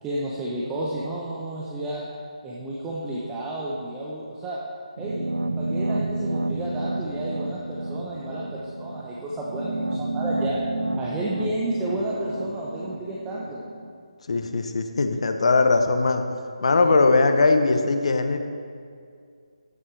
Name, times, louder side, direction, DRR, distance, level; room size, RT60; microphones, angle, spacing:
voice 1, 0.0-2.0 2.4-4.6 5.0-5.3 5.6-10.6 11.0-13.6, right 1 dB, 10° right, -5 dB, 0.8 m, -31 dB
sound 1, 5.0-13.9, right 2 dB, 85° right, 0.7 m, -30 dB
voice 2, 14.3-16.2 16.6-18.4, left 3 dB, 60° left, 7 dB, 0.8 m, -20 dB
13.0 x 7.7 x 3.3 m, 2.2 s
figure-of-eight pair, 155°, 4 cm